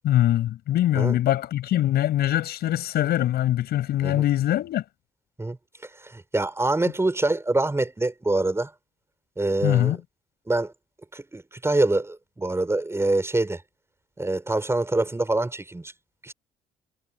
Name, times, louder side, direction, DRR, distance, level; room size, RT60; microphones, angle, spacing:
voice 1, 0.0-4.8 9.6-10.0, left 13 dB, 75° left, 6.1 m, -23 dB
voice 2, 6.1-8.7 9.4-10.0 10.5-10.7 11.1-13.6 14.2-15.9 16.2-16.3, right 2 dB, 15° right, 4.8 m, -25 dB
supercardioid pair, 75°, 17 cm